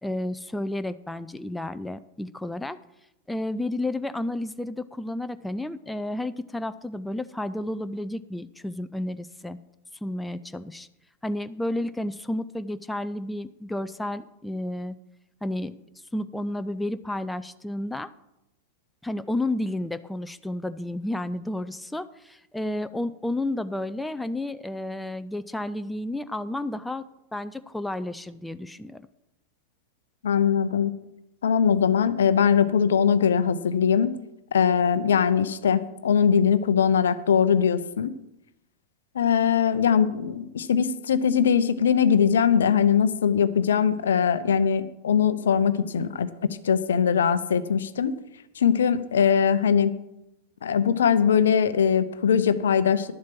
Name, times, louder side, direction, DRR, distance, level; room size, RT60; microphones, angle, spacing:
voice 1, 0.0-2.8 3.3-9.6 10.0-10.9 11.2-15.0 15.4-15.7 16.1-18.1 19.0-27.1 27.3-29.1, left 1 dB, 5° left, 12 dB, 0.4 m, -31 dB
voice 2, 30.2-30.9 31.4-34.2 34.5-38.1 39.1-46.3 46.6-48.1 48.6-49.9 50.6-53.1, left 7 dB, 65° left, 14 dB, 0.6 m, -21 dB
11.5 x 7.3 x 6.0 m, 0.88 s
figure-of-eight pair, 90°, 0 cm